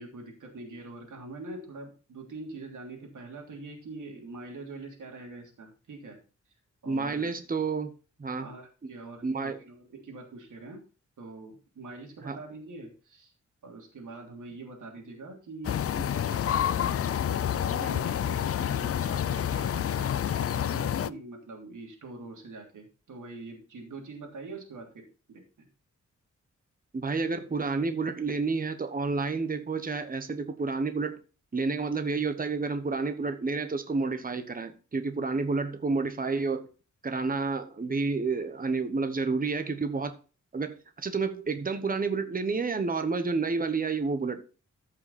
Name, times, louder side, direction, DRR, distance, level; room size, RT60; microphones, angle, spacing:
voice 1, 0.0-6.2 6.8-7.3 8.4-10.8 11.2-13.3 13.6-25.7, right 3 dB, 90° right, 3.2 m, -44 dB
voice 2, 6.9-7.9 8.2-8.5 9.2-9.6 12.2-12.4 26.9-31.2 31.5-36.7 37.0-40.1 40.5-44.5, right 4 dB, 30° right, 1.1 m, -30 dB
sound 1, 15.6-21.1, left 9 dB, 50° left, 0.4 m, -28 dB
13.5 x 5.8 x 4.2 m
wide cardioid pair, 140°, 30 cm